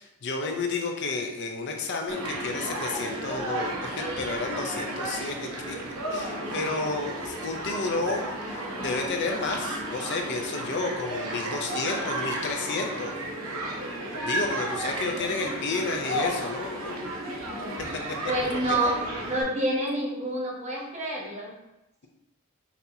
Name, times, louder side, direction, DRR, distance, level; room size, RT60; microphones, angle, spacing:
voice 1, 0.0-5.8 6.1-13.1 14.2-17.2 17.8-17.9 18.5-18.9, left 3 dB, 55° left, 3 dB, 0.5 m, -31 dB
Human group actions, 2.1-19.4, right 1 dB, 75° right, 0.8 m, -33 dB
voice 2, 6.4-6.7 15.2-15.8 17.2-19.0 19.2-21.5, right 1 dB, 35° right, -2 dB, 0.9 m, -30 dB
5.9 x 2.8 x 2.7 m, 0.93 s
head